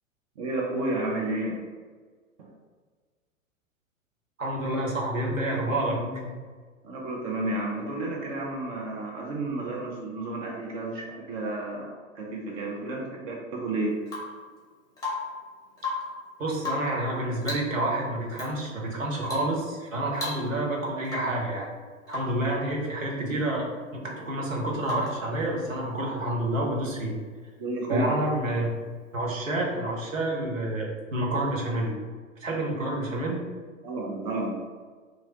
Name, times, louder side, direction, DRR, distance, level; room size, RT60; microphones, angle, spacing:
voice 1, 0.4-1.6 2.4-2.5 6.8-13.9 27.6-28.1 33.8-34.5, right 2 dB, 30° right, -2 dB, 0.4 m, -31 dB
voice 2, 4.4-6.3 16.4-21.7 22.1-27.1 27.9-28.7 29.1-32.0 32.4-33.4, right 1 dB, 80° right, -2 dB, 0.9 m, -29 dB
Rain / Water tap faucet / Drip, 14.0-14.4 15.0-15.4 15.7-16.2 16.6-17.0 17.4-17.8 18.3-18.5 19.2-19.5 19.8-19.9 20.1-20.7 21.0-21.4 22.1-22.4 24.8-25.3 27.2-27.3, left 3 dB, 10° left, 0.8 m, -35 dB
2.8 x 2.6 x 2.7 m, 1.5 s
figure-of-eight pair, 100°, 39 cm